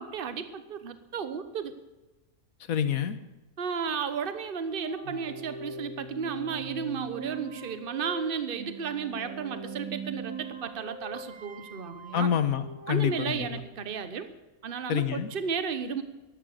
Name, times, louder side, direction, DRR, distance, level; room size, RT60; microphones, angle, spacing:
voice 1, 0.0-1.7 3.6-12.3 12.9-14.3 14.6-16.0, right 6 dB, 40° right, 11 dB, 1.2 m, -33 dB
voice 2, 2.7-3.2 12.1-13.6 14.9-15.3, left 9 dB, 70° left, 12 dB, 1.5 m, -27 dB
sound 1, 4.1-13.5, right 4 dB, 70° right, 2.2 m, -41 dB
14.0 x 11.5 x 6.6 m, 1.1 s
omnidirectional pair, 1.5 m